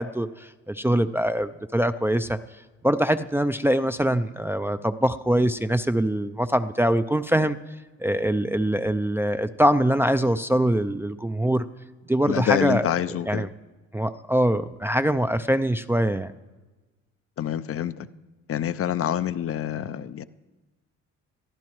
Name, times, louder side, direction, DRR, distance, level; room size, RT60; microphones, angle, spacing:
voice 1, 0.0-2.4 2.8-7.6 8.0-11.7 12.1-12.8 13.3-13.5 13.9-16.3, right 1 dB, 10° right, 9 dB, 0.4 m, -23 dB
voice 2, 12.3-13.5 17.4-18.1 18.5-20.2, left 10 dB, 50° left, 13 dB, 0.5 m, -27 dB
22.5 x 14.0 x 3.1 m, 1.2 s
cardioid pair, 90°, 30 cm